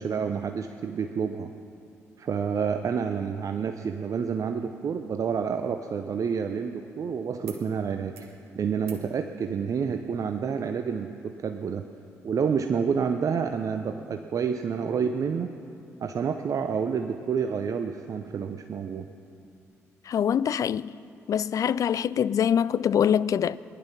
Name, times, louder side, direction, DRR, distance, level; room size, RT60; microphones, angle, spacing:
voice 1, 0.0-1.5 2.2-11.8 12.2-15.5 16.0-19.1, right 6 dB, 50° right, 0.7 m, -29 dB
sound 1, 7.4-7.7 8.0-8.4 8.8-9.1 10.4-10.5, right 7 dB, 85° right, 1.1 m, -52 dB
voice 2, 20.1-20.9 21.3-23.6, left 8 dB, 50° left, 0.4 m, -24 dB
19.0 x 11.0 x 5.9 m
figure-of-eight pair, 40°, 7 cm